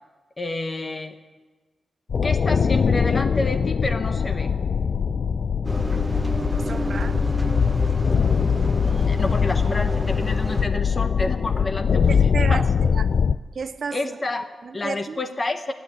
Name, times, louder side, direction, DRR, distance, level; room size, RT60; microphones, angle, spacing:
voice 1, 0.4-1.1 2.2-4.5 8.7-12.6 13.9-14.5 14.7-15.7, left 2 dB, 35° left, 1.1 m, -29 dB
sound 1, 2.1-13.4, left 6 dB, 60° left, 0.3 m, -22 dB
Engine, 5.6-10.6, right 1 dB, 15° right, 0.7 m, -31 dB
voice 2, 6.5-7.3 10.7-10.8 12.1-13.1 13.5-14.2 14.6-15.2, right 5 dB, 60° right, 0.4 m, -32 dB
11.0 x 8.4 x 9.2 m
cardioid pair, 90°, 0 cm